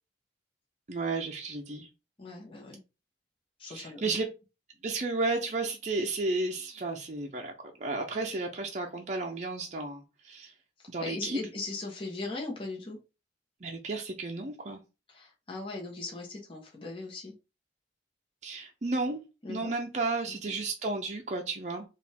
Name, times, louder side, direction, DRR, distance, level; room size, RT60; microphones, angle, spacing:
voice 1, 0.9-1.9 3.6-4.3 4.8-10.5 10.9-11.4 13.6-14.8 18.4-19.2 19.5-21.8, right 3 dB, 40° right, 1 dB, 0.6 m, -33 dB
voice 2, 2.2-2.8 3.6-4.1 10.8-13.0 15.1-17.3 19.4-19.7, left 3 dB, 30° left, -2 dB, 1.1 m, -39 dB
4.9 x 2.5 x 3.5 m, 0.29 s
head